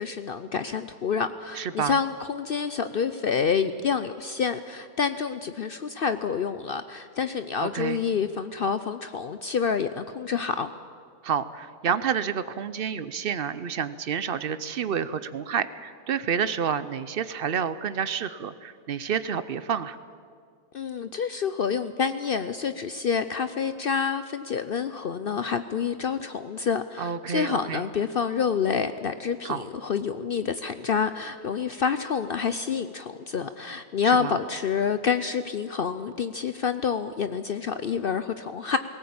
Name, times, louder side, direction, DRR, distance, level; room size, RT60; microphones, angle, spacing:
voice 1, 0.0-10.7 20.7-38.8, left 6 dB, 60° left, 11 dB, 0.5 m, -28 dB
voice 2, 1.6-2.0 7.6-8.0 11.2-20.0 27.0-27.8 29.4-29.6 34.0-34.3, right 7 dB, 55° right, 14 dB, 0.6 m, -29 dB
19.0 x 17.5 x 8.6 m, 2.1 s
omnidirectional pair, 1.6 m